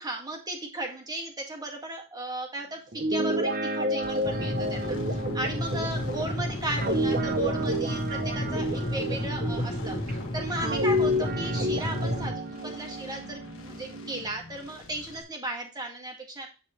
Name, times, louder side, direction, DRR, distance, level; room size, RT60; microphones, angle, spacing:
voice 1, 0.0-16.5, right 1 dB, 20° right, 2 dB, 1.9 m, -36 dB
Guitar, 2.9-10.1 10.6-14.3, equal, 45° right, 0.8 m, -30 dB
sound 1, 4.0-15.2, left 2 dB, 75° left, 1.5 m, -47 dB
sound 2, 4.2-12.3, left 1 dB, 50° left, 2.1 m, -32 dB
9.7 x 4.8 x 3.1 m, 0.31 s
head